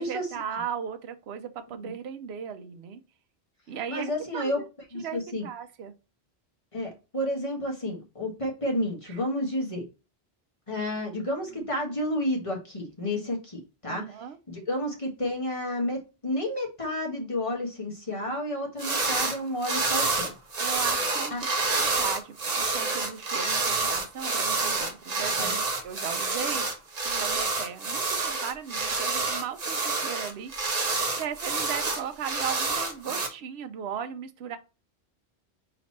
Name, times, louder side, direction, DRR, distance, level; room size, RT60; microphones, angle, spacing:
voice 1, 0.0-3.0 3.7-4.7 4.9-5.9 9.0-9.2 11.5-11.7 13.9-14.4 20.6-26.7 27.0-30.5 31.1-34.6, right 8 dB, 80° right, 0.9 m, -37 dB
voice 2, 3.9-4.6 4.9-5.5 6.7-9.8 10.7-14.1 14.5-20.3 21.3-21.4 25.4-25.5, left 1 dB, 30° left, 1.5 m, -31 dB
sound 1, 18.8-19.4 19.6-33.3, right 3 dB, 40° right, 0.9 m, -28 dB
4.2 x 3.0 x 4.1 m
omnidirectional pair, 1.1 m